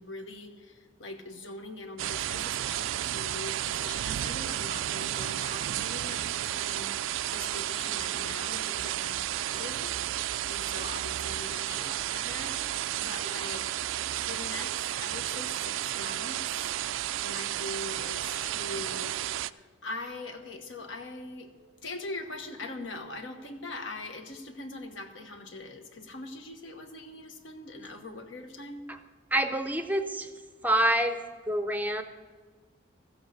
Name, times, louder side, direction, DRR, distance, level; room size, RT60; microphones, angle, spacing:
voice 1, 0.0-13.7 14.2-16.7 17.2-21.5 21.8-28.9, left 2 dB, 75° left, 6 dB, 1.2 m, -42 dB
sound 1, 2.0-19.5, right 12 dB, 85° right, 0.3 m, -32 dB
voice 2, 29.3-30.3 30.6-31.2 31.5-32.0, right 1 dB, 10° right, 8 dB, 0.5 m, -26 dB
14.0 x 8.0 x 6.4 m, 1.5 s
head